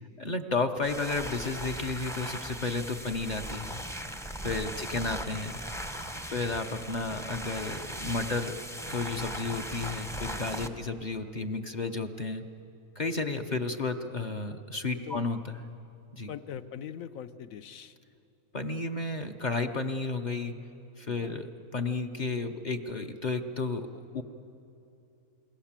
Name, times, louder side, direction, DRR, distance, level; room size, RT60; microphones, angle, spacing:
voice 1, 0.2-3.8 4.4-5.5 6.2-8.6 8.9-12.4 13.0-15.7 16.1-16.3 18.5-20.5 21.0-24.2, left 3 dB, 35° left, 6 dB, 0.8 m, -32 dB
sound 1, 0.8-10.7, equal, 5° left, 0.6 m, -38 dB
voice 2, 14.9-15.2 16.3-18.0 21.0-21.4, left 9 dB, 70° left, 11 dB, 1.1 m, -43 dB
28.0 x 20.5 x 7.4 m, 2.8 s
omnidirectional pair, 1.5 m